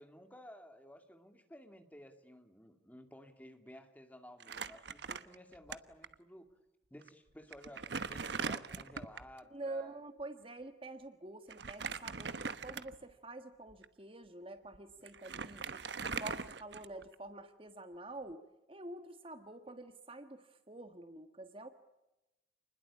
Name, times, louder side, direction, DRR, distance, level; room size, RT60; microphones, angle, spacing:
voice 1, 0.0-6.5 6.9-10.0, equal, 10° left, 6 dB, 2.5 m, -54 dB
Crumpling crinkling, 4.4-5.7 6.0-6.1 7.0-7.1 7.5-9.3 11.5-13.1 13.7-13.8 14.7-14.8 15.1-17.1, right 5 dB, 75° right, 1.1 m, -41 dB
voice 2, 9.5-15.8 16.2-21.7, right 2 dB, 30° right, 8 dB, 1.5 m, -47 dB
29.0 x 21.0 x 8.6 m, 0.98 s
head